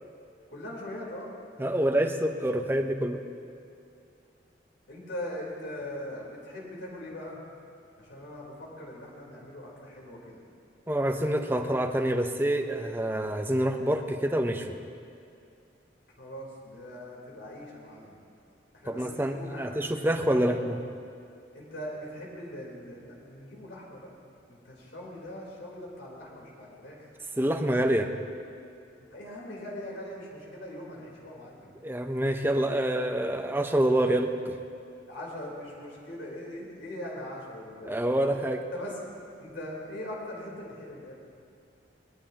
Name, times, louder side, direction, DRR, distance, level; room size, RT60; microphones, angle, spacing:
voice 1, 0.5-1.3 1.7-2.2 4.9-7.4 8.0-10.4 16.2-18.2 18.7-20.5 21.5-24.1 24.5-27.0 29.0-31.7 35.1-38.0 38.7-39.1 39.4-41.1, left 1 dB, 90° left, -3 dB, 4.0 m, -41 dB
voice 2, 1.6-3.2 10.9-14.8 18.9-20.8 27.4-28.1 31.8-34.6 37.8-38.6, right 1 dB, 10° right, 5 dB, 0.7 m, -27 dB
21.0 x 20.0 x 3.0 m, 2.4 s
head